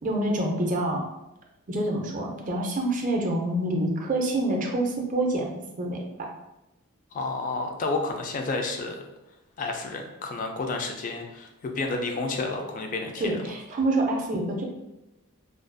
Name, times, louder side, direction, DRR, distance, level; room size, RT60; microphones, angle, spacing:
voice 1, 0.0-1.0 1.7-6.3 13.2-14.6, right 1 dB, 35° right, 1 dB, 0.4 m, -27 dB
voice 2, 7.1-9.0 9.6-13.4, left 3 dB, 35° left, 3 dB, 0.3 m, -30 dB
2.4 x 2.2 x 2.5 m, 0.94 s
head